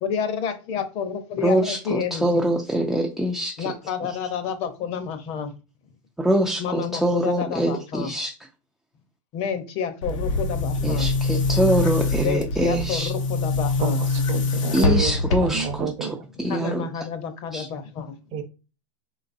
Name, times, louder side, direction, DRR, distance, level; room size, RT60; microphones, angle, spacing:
voice 1, 0.0-2.5 3.6-5.5 6.6-8.1 9.3-11.1 12.2-14.0 16.5-18.1, left 7 dB, 40° left, 0.7 m, -29 dB
voice 2, 1.4-3.8 4.1-4.2 6.2-8.4 10.8-13.1 14.7-17.1 17.5-17.7, right 1 dB, ahead, 0.3 m, -24 dB
Boom, 10.0-15.8, left 3 dB, 80° left, 0.9 m, -24 dB
voice 3, 13.8-16.2 16.7-16.8 18.3-18.4, right 7 dB, 40° right, 0.6 m, -30 dB
4.0 x 3.8 x 2.5 m
supercardioid pair, 140°, 16 cm